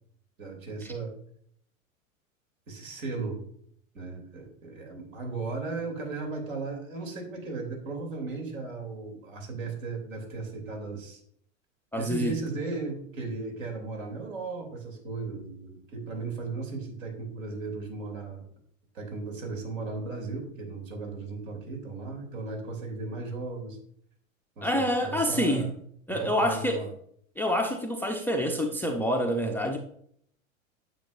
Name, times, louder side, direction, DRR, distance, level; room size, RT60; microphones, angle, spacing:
voice 1, 0.4-1.2 2.7-3.4 3.9-11.2 12.0-18.4 18.9-23.8 24.6-25.7 26.1-26.9, right 3 dB, 70° right, 2 dB, 3.1 m, -36 dB
voice 2, 11.9-12.4 24.6-25.7 26.1-26.8 27.4-29.8, equal, 5° left, 4 dB, 0.4 m, -27 dB
9.0 x 7.0 x 2.5 m, 0.66 s
hypercardioid pair, 100°, 41 cm